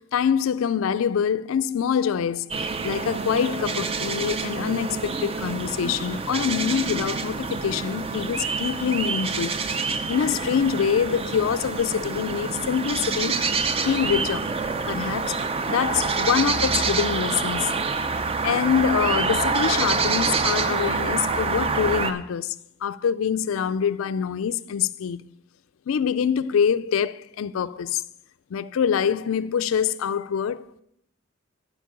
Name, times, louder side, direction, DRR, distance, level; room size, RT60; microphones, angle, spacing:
voice 1, 0.0-9.5 10.1-13.4 13.8-14.5 14.9-15.4 15.7-17.7 18.4-22.6 22.8-25.3 25.9-28.0 28.5-30.8, left 7 dB, 70° left, 0.4 m, -25 dB
sound 1, 2.5-22.1, right 4 dB, 30° right, 0.5 m, -27 dB
8.3 x 5.3 x 7.4 m
head